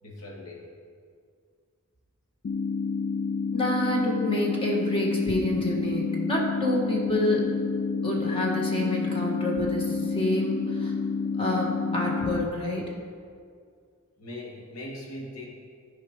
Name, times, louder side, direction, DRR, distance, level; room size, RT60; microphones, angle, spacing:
voice 1, 0.0-0.6 14.2-15.5, left 1 dB, 80° left, -3 dB, 2.1 m, -40 dB
sound 1, 2.4-12.4, left 5 dB, 45° left, 0.3 m, -29 dB
voice 2, 3.5-7.5 8.0-10.9 11.4-12.9, left 1 dB, 25° left, -2 dB, 1.6 m, -28 dB
13.5 x 4.9 x 5.2 m, 2.2 s
head